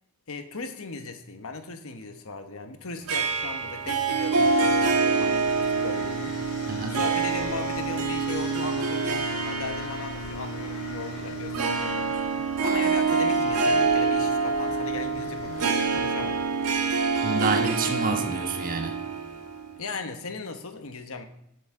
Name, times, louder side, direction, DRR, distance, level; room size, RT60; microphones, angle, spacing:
voice 1, 0.3-6.4 6.9-12.1 12.6-16.4 19.8-21.3, left 3 dB, 65° left, 7 dB, 1.2 m, -37 dB
Harp, 3.1-19.8, right 4 dB, 85° right, 1.3 m, -26 dB
sound 1, 4.4-17.3, left 3 dB, 85° left, 3.1 m, -40 dB
voice 2, 6.7-7.0 17.2-19.0, right 3 dB, 40° right, 4 dB, 1.3 m, -28 dB
17.0 x 8.0 x 3.7 m, 0.79 s
head